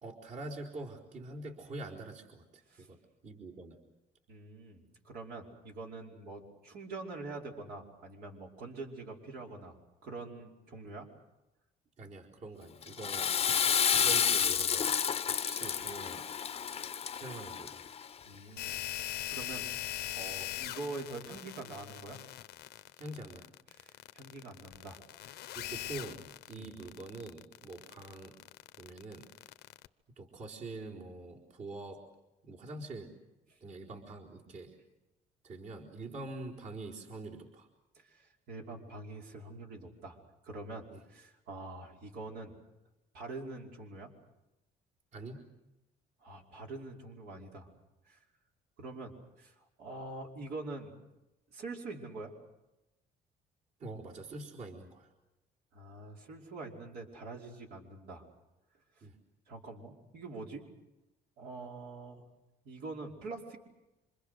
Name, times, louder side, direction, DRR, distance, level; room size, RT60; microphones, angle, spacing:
voice 1, 0.0-3.8 12.0-13.4 13.9-14.9 15.3-16.3 17.1-17.8 23.0-23.5 25.5-28.4 28.8-29.3 30.2-32.1 32.4-33.1 33.6-34.8 35.4-37.7 40.9-41.0 45.1-45.4 47.3-47.4 53.8-55.1 59.0-59.2, right 2 dB, 45° right, -2 dB, 4.3 m, -45 dB
voice 2, 4.3-9.8 10.0-11.1 18.2-19.7 20.2-22.2 23.7-25.4 26.5-26.7 38.0-40.2 40.4-42.5 43.1-44.1 46.2-47.7 48.1-48.2 48.8-49.1 49.4-50.9 51.5-52.3 55.7-58.2 59.0-59.1 59.5-60.6 61.4-62.2 62.7-63.6, right 3 dB, 70° right, 0 dB, 5.2 m, -45 dB
Water / Toilet flush, 12.8-18.1, left 7 dB, 35° left, 0.8 m, -30 dB
sound 1, 18.6-29.9, left 14 dB, 75° left, 0.9 m, -41 dB
28.0 x 26.5 x 6.6 m, 0.97 s
cardioid pair, 110°, 17 cm